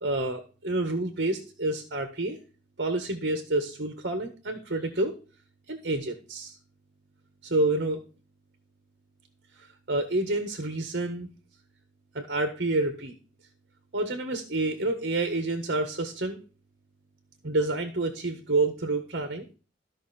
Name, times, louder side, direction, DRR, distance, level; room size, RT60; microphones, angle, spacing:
voice 1, 0.0-2.4 2.8-5.2 5.7-6.6 7.4-8.0 9.9-11.3 12.1-13.1 13.9-16.4 17.4-19.5, right 2 dB, 60° right, 7 dB, 1.5 m, -28 dB
14.0 x 5.9 x 4.4 m, 0.35 s
head